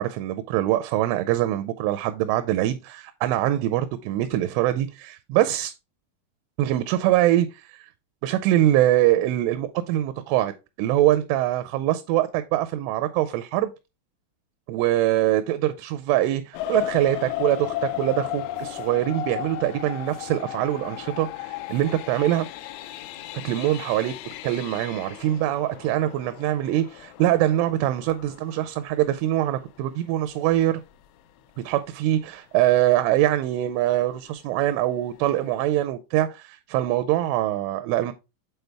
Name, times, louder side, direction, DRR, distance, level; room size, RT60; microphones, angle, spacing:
voice 1, 0.0-5.7 6.6-7.9 8.2-13.7 14.7-22.5 23.4-24.1 24.4-30.8 31.6-38.1, right 13 dB, 85° right, 2.9 m, -23 dB
sound 1, 16.5-29.2 29.8-29.9 30.4-30.6 30.9-31.0, left 13 dB, 85° left, 2.8 m, -35 dB
8.0 x 4.1 x 3.3 m
omnidirectional pair, 5.8 m